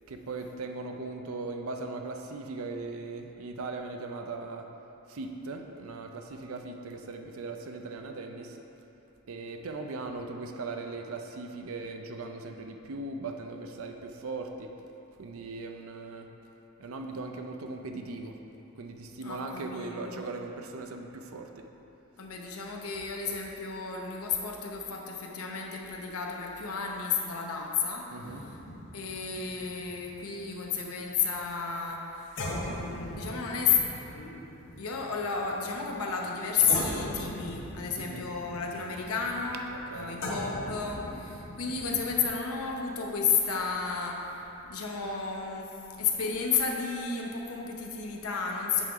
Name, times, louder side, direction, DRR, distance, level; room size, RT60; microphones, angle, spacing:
voice 1, 0.1-4.7 5.1-8.6 9.3-14.7 15.2-16.3 16.8-18.4 18.7-21.7 28.1-28.4 37.9-38.3 39.7-40.2, right 3 dB, 75° right, 4 dB, 0.5 m, -39 dB
voice 2, 19.2-20.2 22.2-28.1 28.9-32.3 32.6-33.8 34.1-34.4 34.8-39.6 39.9-48.8, left 6 dB, 85° left, 0 dB, 0.8 m, -32 dB
sound 1, 28.2-31.5 31.9-32.0 32.4-36.3 36.7-42.4, left 1 dB, 55° left, 0.9 m, -39 dB
8.2 x 3.9 x 4.6 m, 3.0 s
head